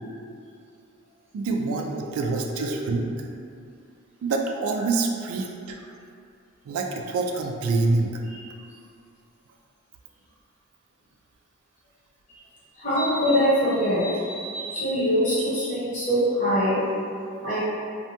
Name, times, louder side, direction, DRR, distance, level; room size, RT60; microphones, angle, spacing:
voice 1, 1.3-3.0 4.2-5.8 6.7-8.2 17.3-17.6, right 3 dB, 90° right, 7 dB, 0.3 m, -26 dB
voice 2, 12.8-16.8 17.4-17.6, equal, 35° left, -10 dB, 0.8 m, -23 dB
2.6 x 2.2 x 2.7 m, 2.4 s
head